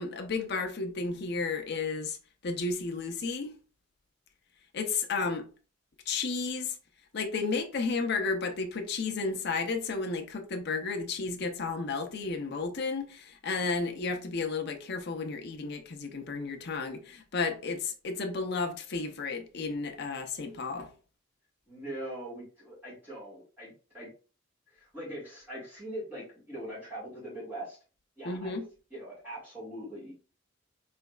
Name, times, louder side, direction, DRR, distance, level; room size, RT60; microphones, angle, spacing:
voice 1, 0.0-2.1 2.4-3.5 4.7-5.4 6.1-6.7 7.1-13.1 13.4-17.0 17.3-20.9 28.3-28.6, left 4 dB, 55° left, 0.6 m, -32 dB
voice 2, 21.7-24.1 24.7-27.8 28.2-28.6 28.9-30.1, right 1 dB, 10° right, 1.8 m, -42 dB
3.9 x 3.2 x 2.4 m
head